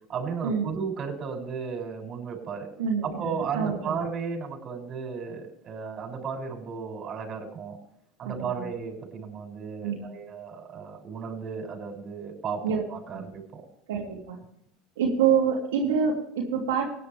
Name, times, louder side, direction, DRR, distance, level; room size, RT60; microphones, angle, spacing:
voice 1, 0.1-2.7 3.0-7.8 8.2-13.6, right 6 dB, 45° right, 2 dB, 6.7 m, -34 dB
voice 2, 2.8-3.9 8.2-8.6 9.8-10.1 12.6-12.8 13.1-13.2 13.9-14.4 15.0-16.8, right 6 dB, 85° right, -3 dB, 2.9 m, -26 dB
18.0 x 10.5 x 3.5 m, 0.73 s
hypercardioid pair, 90°, 0 cm